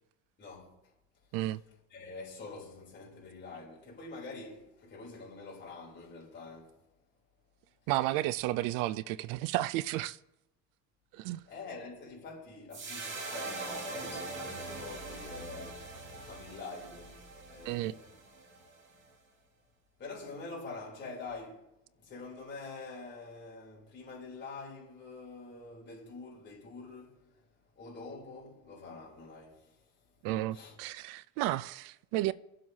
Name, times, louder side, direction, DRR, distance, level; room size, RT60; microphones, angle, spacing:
voice 1, 0.4-0.7 1.9-6.8 11.5-17.2 17.5-18.1 20.0-21.6 22.0-27.3 27.7-29.9 30.5-30.7, left 3 dB, 35° left, 3.4 m, -46 dB
voice 2, 7.9-10.2 11.1-11.4 17.7-18.0 30.2-32.3, right 16 dB, 85° right, 0.5 m, -32 dB
sound 1, 12.7-19.1, right 3 dB, 40° right, 2.1 m, -42 dB
21.5 x 7.6 x 2.8 m
cardioid pair, 130°, 32 cm